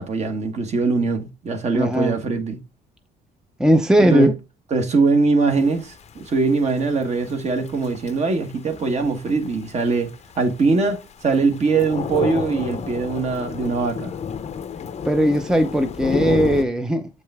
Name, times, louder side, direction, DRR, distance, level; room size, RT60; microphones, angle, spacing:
voice 1, 0.0-2.6 4.0-4.3 4.7-10.1 10.4-14.1, right 4 dB, 40° right, 1.6 m, -22 dB
voice 2, 1.7-2.2 3.6-4.3 15.0-17.1, equal, 5° right, 0.6 m, -18 dB
Thunder / Rain, 5.5-16.6, left 7 dB, 40° left, 0.7 m, -31 dB
7.9 x 5.2 x 3.5 m
cardioid pair, 110°, 17 cm